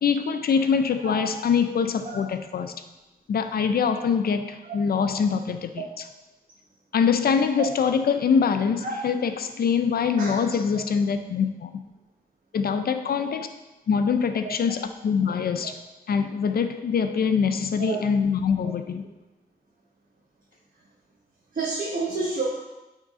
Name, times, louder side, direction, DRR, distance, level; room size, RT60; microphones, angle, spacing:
voice 1, 0.0-2.7 3.3-5.8 6.9-11.8 12.5-13.5 13.9-15.8 16.1-19.1, left 6 dB, 70° left, 8 dB, 0.5 m, -24 dB
voice 2, 21.5-22.5, right 4 dB, 55° right, -4 dB, 1.2 m, -29 dB
8.9 x 3.7 x 3.7 m, 1.1 s
cardioid pair, 80°, 16 cm